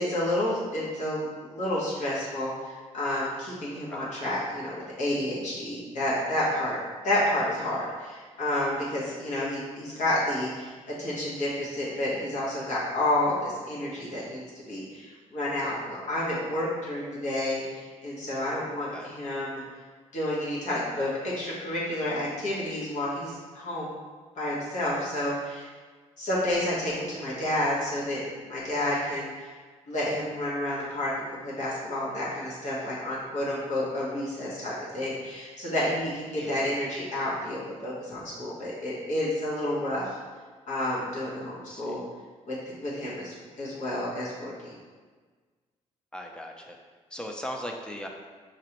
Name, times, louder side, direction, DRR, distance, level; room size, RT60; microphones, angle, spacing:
voice 1, 0.0-6.8 7.0-10.7 11.0-14.4 14.7-19.6 20.1-23.9 24.4-25.7 26.2-29.5 29.9-40.2 40.7-42.0 42.5-44.8, left 1 dB, 75° left, -7 dB, 1.5 m, -30 dB
voice 2, 41.7-42.0 46.1-46.8 47.1-48.1, equal, 5° left, 1 dB, 0.5 m, -38 dB
5.2 x 3.0 x 3.0 m, 1.5 s
cardioid pair, 110°, 13 cm